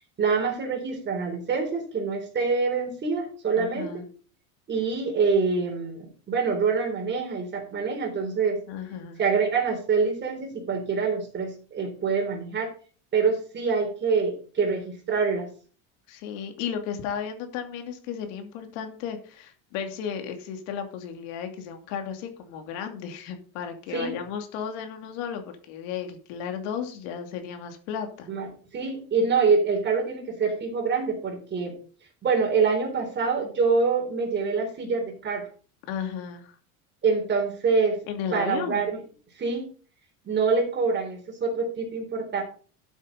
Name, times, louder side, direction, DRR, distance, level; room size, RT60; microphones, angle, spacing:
voice 1, 0.2-4.0 4.7-8.6 9.2-12.7 13.1-15.5 23.9-24.1 28.3-31.7 32.2-35.5 37.0-38.0 38.3-39.0 39.4-39.7 40.2-42.4, right 5 dB, 30° right, 3 dB, 4.0 m, -25 dB
voice 2, 3.5-4.0 8.7-9.2 16.1-28.3 35.9-36.5 38.1-38.8, left 7 dB, 70° left, 5 dB, 2.7 m, -34 dB
12.5 x 8.2 x 4.1 m, 0.40 s
cardioid pair, 145°, 39 cm